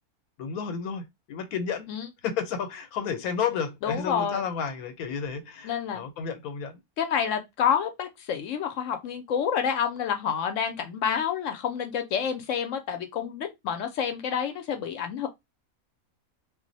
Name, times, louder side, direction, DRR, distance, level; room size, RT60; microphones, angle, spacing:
voice 1, 0.4-1.9 2.2-6.8, left 6 dB, 90° left, 1.1 m, -32 dB
voice 2, 1.9-2.3 3.8-4.4 5.6-6.0 7.0-15.3, left 8 dB, 70° left, 0.8 m, -28 dB
2.4 x 2.0 x 3.9 m
omnidirectional pair, 1.5 m